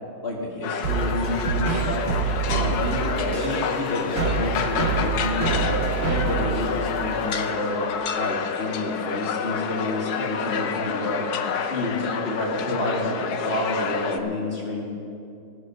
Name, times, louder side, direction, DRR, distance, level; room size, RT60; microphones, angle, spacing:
voice 1, 0.2-2.1 2.5-7.8 8.1-11.2 11.7-14.8, left 1 dB, 30° left, -3 dB, 2.3 m, -29 dB
sound 1, 0.6-14.2, left 6 dB, 65° left, 1.0 m, -29 dB
sound 2, 0.8-7.5, right 6 dB, 85° right, 3.1 m, -27 dB
14.5 x 13.0 x 5.5 m, 2.5 s
omnidirectional pair, 2.4 m